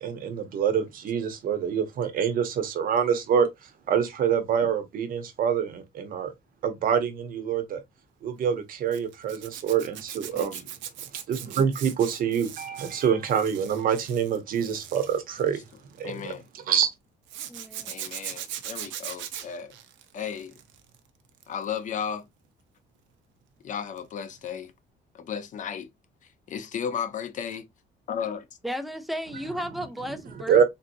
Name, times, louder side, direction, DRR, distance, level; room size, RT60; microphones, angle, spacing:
voice 1, 0.0-6.3 6.6-7.8 8.2-10.6 11.3-15.6 16.0-16.9 30.5-30.6, right 8 dB, 50° right, 0.8 m, -26 dB
Zipper (clothing), 8.9-16.3 17.3-20.9 21.3-21.6 24.0-24.1 24.4-24.5, right 10 dB, 80° right, 0.7 m, -40 dB
voice 2, 16.0-16.4 17.9-19.7 20.1-20.6 21.5-22.2 23.6-24.7 25.1-25.9 26.5-27.6 28.1-28.5, left 7 dB, 40° left, 0.6 m, -34 dB
voice 3, 17.5-17.9 28.6-30.6, equal, ahead, 0.4 m, -34 dB
3.7 x 2.7 x 2.6 m
cardioid pair, 165°, 19 cm